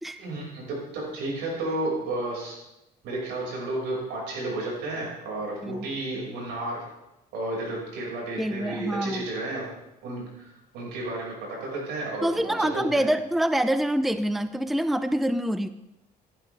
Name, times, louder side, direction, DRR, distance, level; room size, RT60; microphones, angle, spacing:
voice 1, 0.2-2.5 3.0-6.8 7.3-9.7 10.0-11.3 11.6-13.1, right 2 dB, 90° right, -3 dB, 5.7 m, -32 dB
voice 2, 8.4-9.3 12.2-15.7, right 1 dB, ahead, 11 dB, 0.5 m, -26 dB
15.5 x 11.5 x 3.4 m, 0.89 s
cardioid pair, 110°, 17 cm